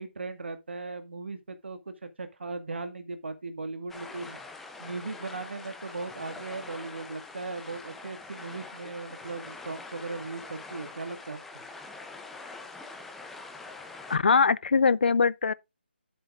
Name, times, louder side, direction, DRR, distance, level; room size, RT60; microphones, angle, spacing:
voice 1, 0.0-4.4 4.8-11.4, right 3 dB, 75° right, 1.9 m, -38 dB
sound 1, 3.9-14.2, left 3 dB, 5° left, 0.6 m, -44 dB
voice 2, 14.1-15.5, left 5 dB, 65° left, 0.5 m, -22 dB
11.5 x 7.6 x 2.5 m
hypercardioid pair, 165°, 6 cm